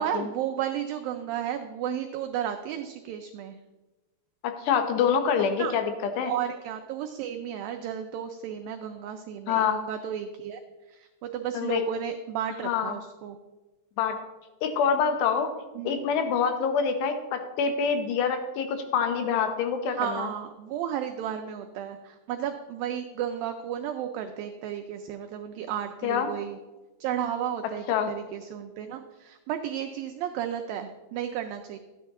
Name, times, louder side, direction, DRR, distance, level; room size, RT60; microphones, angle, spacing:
voice 1, 0.0-3.6 5.6-5.7 6.2-10.6 10.9-13.4 15.8-16.0 19.9-26.6 27.0-31.8, right 9 dB, 90° right, 5 dB, 2.0 m, -33 dB
voice 2, 4.4-5.8 6.2-6.3 9.5-9.8 11.5-11.8 12.6-12.9 14.0-14.2 14.6-15.5 15.8-20.3 26.0-26.3 27.9-28.1, left 7 dB, 85° left, 7 dB, 3.2 m, -26 dB
13.0 x 9.4 x 3.7 m, 1.1 s
omnidirectional pair, 4.8 m